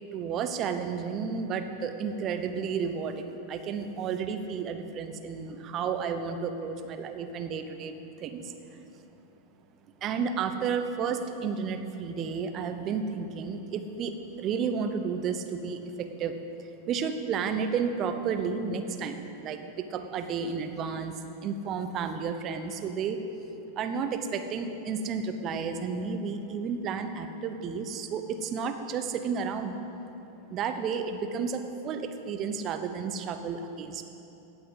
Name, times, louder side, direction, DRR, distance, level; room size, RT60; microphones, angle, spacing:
voice 1, 0.1-8.5 10.0-16.3 16.9-21.2 21.4-23.2 23.8-29.8 30.5-34.0, right 6 dB, 35° right, 7 dB, 1.0 m, -32 dB
16.5 x 6.0 x 7.9 m, 3.0 s
figure-of-eight pair, 90°, 0 cm